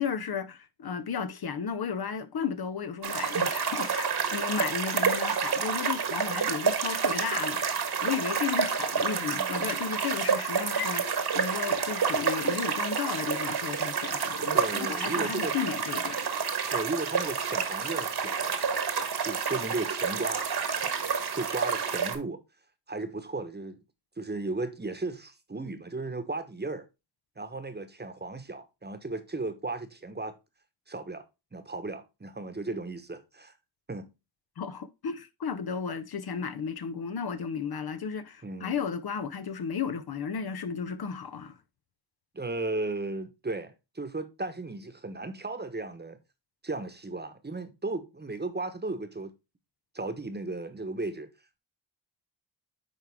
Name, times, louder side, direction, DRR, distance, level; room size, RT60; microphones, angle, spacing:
voice 1, 0.0-16.2 34.6-41.6, left 6 dB, 50° left, 0.8 m, -34 dB
sound 1, 3.0-22.2, right 6 dB, 55° right, 1.4 m, -29 dB
voice 2, 9.3-9.8 14.5-15.6 16.7-18.6 19.2-20.5 20.8-20.9 21.3-22.4 22.9-23.8 24.2-26.9 27.4-30.3 30.9-31.2 31.5-33.5 33.9-34.1 38.4-38.8 42.3-46.2 46.6-49.3 49.9-51.3, right 2 dB, 20° right, 1.1 m, -35 dB
9.5 x 3.6 x 3.5 m
cardioid pair, 65°, 47 cm